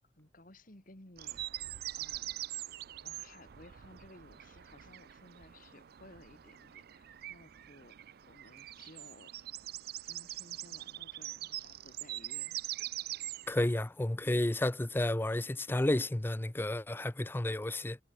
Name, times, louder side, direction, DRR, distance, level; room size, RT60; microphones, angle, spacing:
voice 1, 0.0-1.5 2.0-2.5 3.0-9.3 10.0-12.6, left 2 dB, 45° left, 3.1 m, -57 dB
sound 1, 1.2-13.7, right 14 dB, 55° right, 0.4 m, -43 dB
voice 2, 13.5-18.0, left 1 dB, 10° left, 0.5 m, -31 dB
head